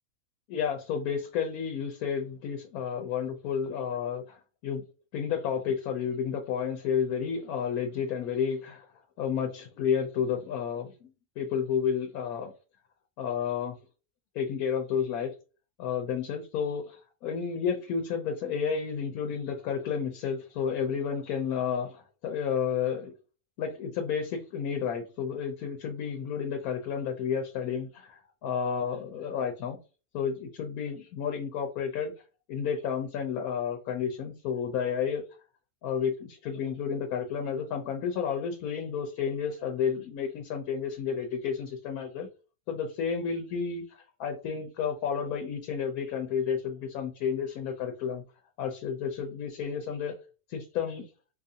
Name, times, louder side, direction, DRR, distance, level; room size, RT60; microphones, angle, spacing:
voice 1, 0.5-4.4 4.6-4.8 5.1-8.9 9.2-11.1 11.4-12.5 13.2-13.8 14.3-15.3 15.8-23.1 23.6-29.8 30.1-32.1 32.5-35.2 35.8-42.3 42.7-48.2 48.6-50.1 50.5-51.1, left 7 dB, 85° left, 4 dB, 1.1 m, -31 dB
4.3 x 2.4 x 2.7 m, 0.33 s
omnidirectional pair, 1.5 m